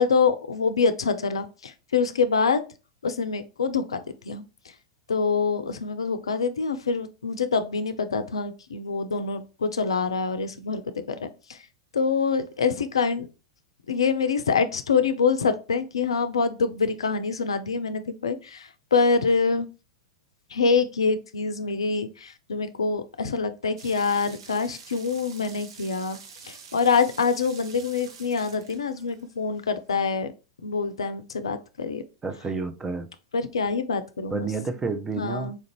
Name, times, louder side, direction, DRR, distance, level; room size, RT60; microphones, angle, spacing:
voice 1, 0.0-2.6 3.0-4.4 5.1-10.8 11.1-11.6 11.9-13.3 13.9-19.7 20.5-26.2 26.4-30.3 30.6-32.0 33.3-34.5 35.2-35.6, left 5 dB, 75° left, 0.4 m, -25 dB
sound 1, 23.8-29.6, right 6 dB, 60° right, 0.6 m, -47 dB
voice 2, 32.2-33.1 34.3-35.5, right 4 dB, 15° right, 0.5 m, -30 dB
4.3 x 2.5 x 2.9 m
figure-of-eight pair, 95°, 3 cm